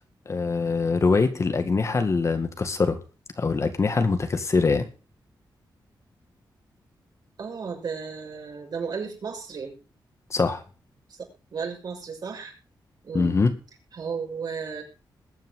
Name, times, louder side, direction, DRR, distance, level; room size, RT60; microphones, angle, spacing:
voice 1, 0.3-3.0 3.4-4.9 10.3-10.6 13.1-13.5, left 4 dB, 40° left, 8 dB, 1.9 m, -23 dB
voice 2, 7.4-9.8 11.2-12.5 13.0-13.4 13.9-14.8, right 5 dB, 55° right, 2 dB, 6.4 m, -34 dB
21.5 x 9.3 x 3.7 m, 0.33 s
wide cardioid pair, 145°, 8 cm